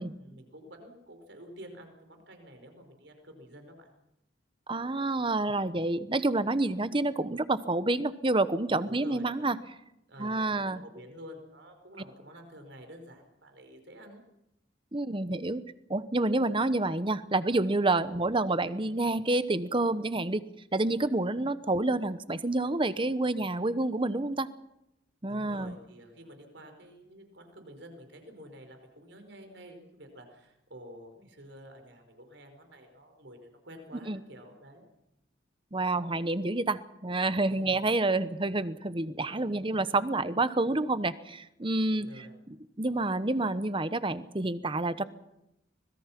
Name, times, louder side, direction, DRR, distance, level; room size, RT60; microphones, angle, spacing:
voice 1, 0.0-3.9 8.7-9.6 10.1-14.2 25.3-34.9 37.5-37.8 41.9-42.4, equal, 70° right, 5 dB, 5.2 m, -50 dB
voice 2, 4.7-9.6 10.2-10.8 14.9-15.6 15.9-20.4 20.7-24.5 25.2-25.7 34.1-34.2 35.7-42.1 42.5-45.1, right 2 dB, 25° right, 14 dB, 1.0 m, -28 dB
25.5 x 21.0 x 6.0 m, 0.86 s
head